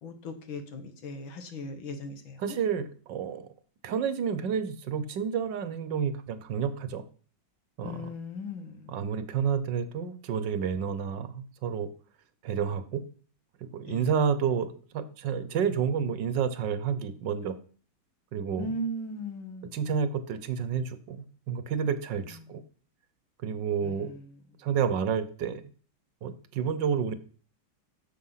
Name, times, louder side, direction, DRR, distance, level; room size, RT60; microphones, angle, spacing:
voice 1, 0.0-2.6 7.8-9.0 13.9-14.1 18.6-19.8 22.4-22.5 23.8-24.3, left 1 dB, 80° left, 7 dB, 2.2 m, -38 dB
voice 2, 2.4-3.5 3.8-7.0 7.8-8.0 8.9-11.9 12.4-13.0 13.6-17.5 18.3-18.8 19.7-22.6 23.4-24.1 24.6-25.6 26.2-27.1, right 7 dB, 70° right, 13 dB, 1.5 m, -30 dB
10.0 x 7.0 x 5.7 m, 0.42 s
omnidirectional pair, 2.1 m